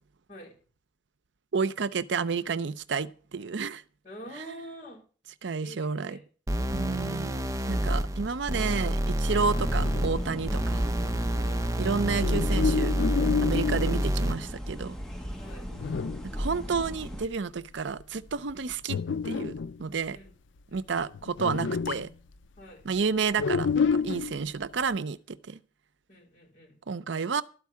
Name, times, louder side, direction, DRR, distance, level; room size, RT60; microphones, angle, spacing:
voice 1, 1.5-3.8 4.3-4.6 5.4-6.2 6.7-7.3 7.7-10.9 11.8-12.9 13.4-14.9 16.2-19.0 19.2-19.5 19.8-20.2 20.7-22.1 22.8-25.6 26.9-27.4, right 5 dB, 80° right, 0.6 m, -30 dB
voice 2, 4.0-5.0 5.6-6.2 11.4-11.6 15.4-15.7 20.1-20.3 20.7-21.1 22.6-22.8 26.1-26.7, equal, 40° left, 5.6 m, -46 dB
sound 1, 6.5-14.5, right 1 dB, 15° right, 0.6 m, -28 dB
sound 2, 9.5-17.3, equal, 5° left, 1.2 m, -37 dB
sound 3, 9.7-14.2 14.7-14.8 15.2-15.3 15.7-16.4 16.7-16.8 17.0-17.3 17.8-18.0 18.5-19.8 20.7-20.8 21.1-22.1 23.3-24.4, left 5 dB, 90° left, 0.5 m, -29 dB
12.5 x 4.7 x 8.4 m
head